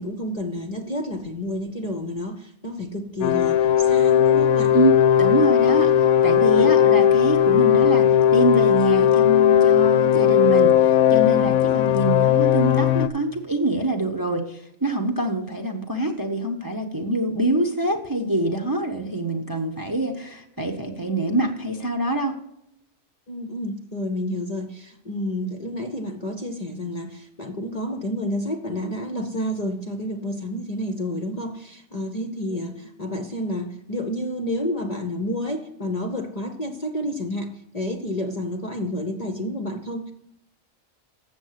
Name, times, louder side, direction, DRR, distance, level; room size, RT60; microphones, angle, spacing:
voice 1, 0.0-4.7 6.5-6.7 9.0-9.1 23.3-40.1, left 1 dB, 40° left, 4 dB, 0.7 m, -30 dB
sound 1, 3.2-13.1, left 10 dB, 90° left, 1.0 m, -17 dB
voice 2, 5.2-22.4, right 1 dB, 20° right, 3 dB, 0.7 m, -25 dB
7.4 x 7.2 x 6.5 m, 0.80 s
omnidirectional pair, 1.4 m